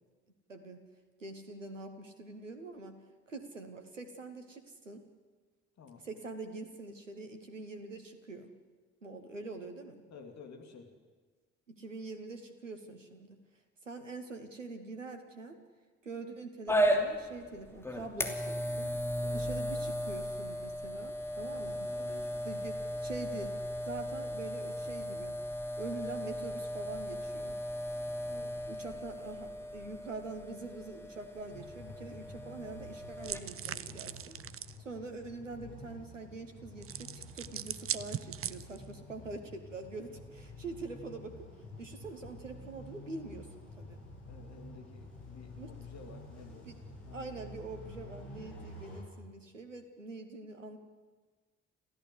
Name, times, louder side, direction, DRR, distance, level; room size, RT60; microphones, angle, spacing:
voice 1, 0.5-0.8 1.2-3.0 3.3-5.1 6.0-8.5 9.0-10.0 11.7-13.4 13.8-15.6 16.0-18.9 19.3-21.9 22.4-23.6 23.8-25.4 25.8-27.6 28.7-41.4 41.8-44.0 45.6-45.7 46.7-46.8 47.1-50.8, right 3 dB, 90° right, 7 dB, 1.2 m, -44 dB
voice 2, 5.8-6.1 10.1-10.9 19.2-19.5 21.4-22.5 28.3-28.8 39.9-40.2 44.3-46.7 47.0-47.4, left 5 dB, 45° left, 3 dB, 3.2 m, -53 dB
sound 1, 16.7-33.4, equal, 5° left, 3.0 m, -36 dB
sound 2, 31.5-49.0, left 1 dB, 80° left, 7.8 m, -50 dB
sound 3, 33.2-34.8 36.8-38.9, right 9 dB, 35° right, 0.8 m, -40 dB
29.0 x 14.5 x 8.2 m, 1.4 s
figure-of-eight pair, 45°, 37 cm